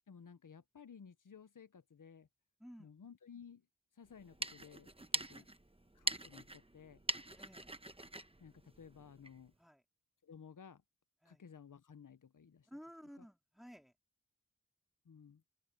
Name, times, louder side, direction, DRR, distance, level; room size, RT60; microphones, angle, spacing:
voice 1, 0.1-2.3 2.8-3.6 4.0-5.5 5.9-7.0 8.4-9.5 10.2-10.8 11.3-12.7 15.0-15.4, left 7 dB, 85° left, 0.7 m, -56 dB
voice 2, 2.6-2.9 5.3-5.4 7.4-7.7 9.6-9.8 11.2-11.4 12.7-13.9, equal, ahead, 2.3 m, -55 dB
sound 1, 4.1-9.4, right 1 dB, 20° right, 1.0 m, -43 dB
open air
wide cardioid pair, 40°, 31 cm